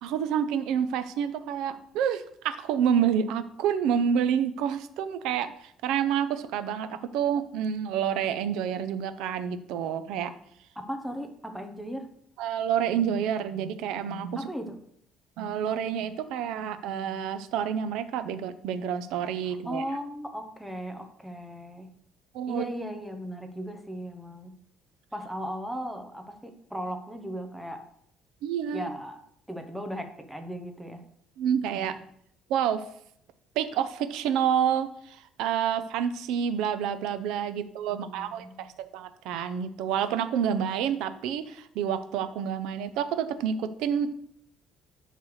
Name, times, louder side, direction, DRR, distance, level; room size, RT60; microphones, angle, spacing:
voice 1, 0.0-10.3 12.4-14.5 15.4-19.8 22.3-22.6 28.4-28.9 31.4-32.0 32.5-32.8 33.6-44.1, right 8 dB, 75° right, 11 dB, 0.6 m, -28 dB
voice 2, 10.8-12.1 14.4-14.8 19.6-21.9 22.5-24.6 25.1-27.8 28.7-29.2 29.5-31.0 37.9-38.7, equal, 5° right, 5 dB, 0.8 m, -37 dB
10.0 x 3.3 x 6.3 m, 0.69 s
cardioid pair, 170°, 0 cm